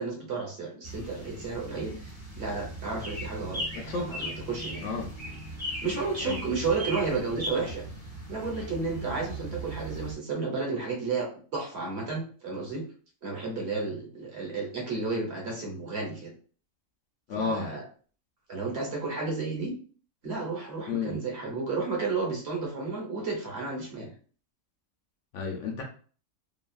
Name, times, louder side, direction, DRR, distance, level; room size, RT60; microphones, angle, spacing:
voice 1, 0.0-2.0 2.4-4.9 5.8-7.8 8.3-12.8 13.2-16.3 17.3-17.8 18.5-19.7 20.2-24.1, right 4 dB, 55° right, 0 dB, 1.1 m, -32 dB
sound 1, 0.8-10.1, right 1 dB, 10° right, 1.2 m, -38 dB
voice 2, 3.7-4.1 4.8-5.1 6.2-6.5 17.3-17.7 20.9-21.2 25.3-25.8, left 4 dB, 70° left, 0 dB, 0.9 m, -32 dB
3.0 x 2.3 x 2.3 m, 0.40 s
omnidirectional pair, 1.4 m